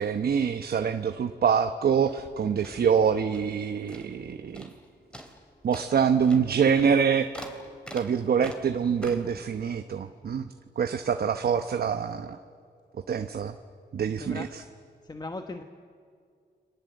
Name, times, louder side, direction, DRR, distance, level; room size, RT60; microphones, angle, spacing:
voice 1, 0.0-4.7 5.6-7.3 7.9-10.5 10.8-12.4 13.1-13.5 13.9-14.6, right 7 dB, 60° right, 8 dB, 1.0 m, -25 dB
sound 1, 2.0-3.6 3.9-4.3 4.5-4.8 5.1-9.4, equal, 5° left, 3.3 m, -45 dB
voice 2, 15.0-15.6, left 2 dB, 20° left, 6 dB, 1.2 m, -37 dB
30.0 x 23.5 x 7.9 m, 2.2 s
cardioid pair, 105°, 18 cm